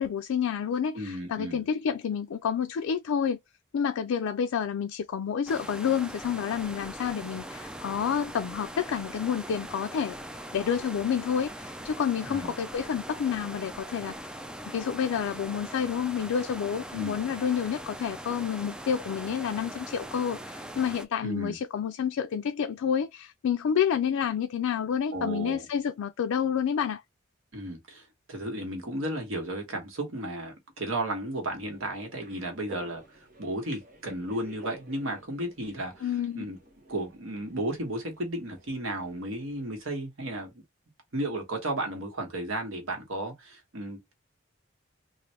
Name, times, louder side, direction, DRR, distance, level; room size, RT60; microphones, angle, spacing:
voice 1, 0.0-3.4 3.7-14.2 14.7-27.0 36.0-36.5, left 7 dB, 85° left, 0.4 m, -29 dB
voice 2, 0.9-1.6 12.2-12.5 16.9-17.2 21.2-21.6 25.1-25.7 27.5-36.6 36.9-40.6 41.1-44.1, right 1 dB, 70° right, 1.3 m, -34 dB
sound 1, 5.5-21.1, right 1 dB, 5° right, 0.3 m, -41 dB
sound 2, 31.5-39.8, right 2 dB, 40° right, 1.0 m, -52 dB
3.2 x 2.5 x 2.8 m
head